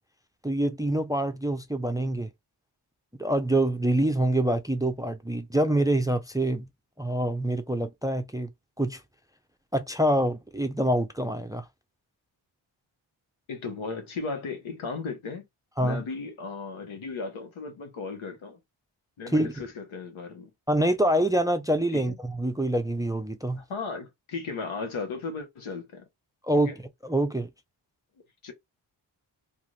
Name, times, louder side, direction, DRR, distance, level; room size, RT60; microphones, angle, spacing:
voice 1, 0.4-2.3 3.2-6.7 7.0-8.5 8.8-9.0 9.7-11.6 15.8-16.0 19.3-19.7 20.7-23.6 26.5-26.7 27.0-27.5, right 1 dB, 10° right, 0.4 m, -25 dB
voice 2, 13.5-15.4 15.8-18.6 19.2-20.5 21.9-22.2 23.6-26.0 26.5-26.8 28.4-28.5, left 4 dB, 75° left, 1.1 m, -36 dB
2.5 x 2.5 x 3.1 m
cardioid pair, 45°, 48 cm